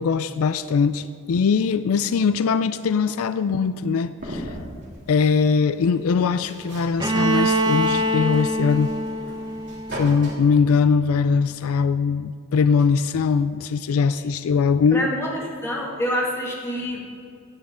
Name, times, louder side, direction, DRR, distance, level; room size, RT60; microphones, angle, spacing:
voice 1, 0.0-4.5 5.1-8.9 9.9-15.1, left 5 dB, 80° left, 13 dB, 0.4 m, -21 dB
sound 1, 4.2-10.3, equal, 55° right, 2.9 m, -39 dB
Bowed string instrument, 7.0-10.9, right 1 dB, 20° right, 0.7 m, -24 dB
voice 2, 14.9-17.0, equal, 15° left, -4 dB, 2.4 m, -26 dB
15.5 x 9.5 x 3.8 m, 2.4 s
head